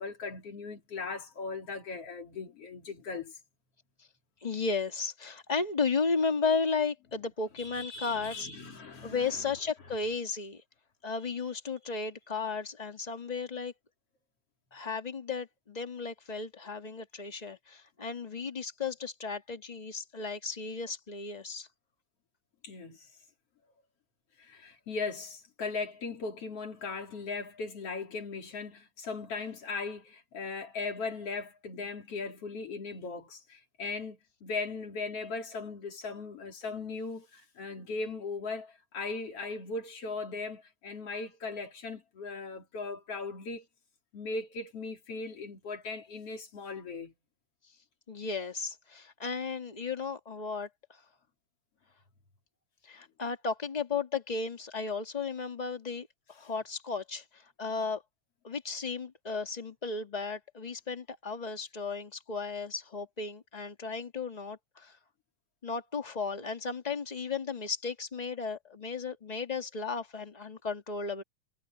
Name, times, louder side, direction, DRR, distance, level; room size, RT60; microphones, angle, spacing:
voice 1, 0.0-3.4 7.6-9.4 22.6-23.1 24.4-43.7 44.1-47.1, left 4 dB, 50° left, 3.8 m, -38 dB
voice 2, 4.4-8.5 9.0-10.6 11.0-13.7 14.7-21.7 48.1-50.7 52.9-58.0 58.4-65.0 65.6-71.2, left 4 dB, 20° left, 1.1 m, -34 dB
omnidirectional pair, 3.5 m